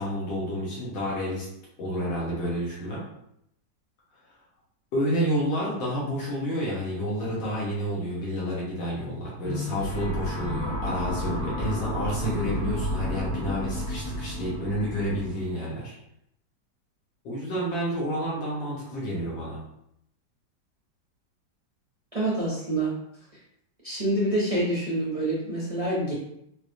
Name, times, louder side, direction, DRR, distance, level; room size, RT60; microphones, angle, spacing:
voice 1, 0.0-1.5 1.8-3.0 4.9-15.9 17.2-19.6, equal, 80° left, -5 dB, 1.8 m, -29 dB
sound 1, 9.4-15.4, equal, 50° left, 2.0 m, -31 dB
voice 2, 22.1-22.9 23.8-26.1, right 1 dB, 65° right, -7 dB, 0.3 m, -26 dB
4.8 x 2.2 x 2.6 m, 0.76 s
omnidirectional pair, 2.0 m